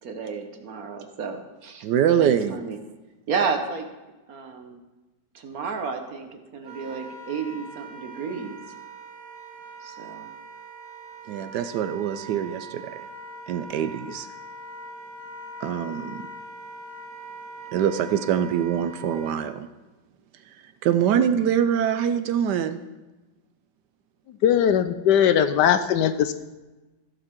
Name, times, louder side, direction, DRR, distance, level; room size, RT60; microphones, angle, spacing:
voice 1, 0.0-1.9 2.2-2.8 3.3-3.9 4.3-4.8 5.3-8.6 9.8-10.3, right 5 dB, 55° right, 5 dB, 1.4 m, -32 dB
voice 2, 1.8-2.6 11.3-13.0 13.5-14.3 15.6-16.2 17.7-19.7 20.6-22.8, right 9 dB, 75° right, 10 dB, 1.1 m, -24 dB
Wind instrument woodwind instrument, 6.6-19.4, right 3 dB, 30° right, 1.4 m, -42 dB
voice 3, 24.4-26.3, left 9 dB, 75° left, 10 dB, 1.2 m, -19 dB
15.5 x 6.6 x 4.5 m, 1.1 s
omnidirectional pair, 2.0 m